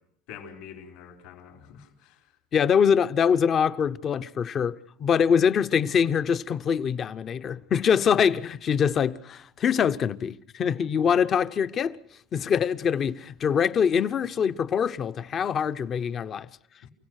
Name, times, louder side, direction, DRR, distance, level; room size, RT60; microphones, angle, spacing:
voice 1, 0.3-2.2 16.8-16.9, left 7 dB, 70° left, 4.5 m, -45 dB
voice 2, 2.5-12.0 12.3-16.5, left 7 dB, 35° left, 0.8 m, -24 dB
29.0 x 16.5 x 6.5 m
supercardioid pair, 125°, 0 cm